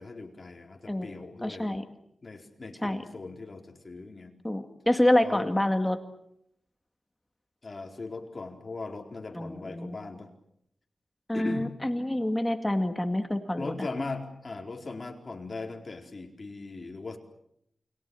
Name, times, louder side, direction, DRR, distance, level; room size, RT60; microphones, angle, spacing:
voice 1, 0.0-1.7 2.2-4.3 5.2-5.5 7.6-10.3 11.3-11.7 13.6-17.2, left 3 dB, 45° left, 2 dB, 4.3 m, -39 dB
voice 2, 1.4-1.8 2.8-3.0 4.4-6.0 9.3-10.0 11.3-13.8, left 1 dB, 10° left, 6 dB, 2.2 m, -27 dB
29.0 x 23.0 x 7.1 m, 0.75 s
wide cardioid pair, 85°, 0 cm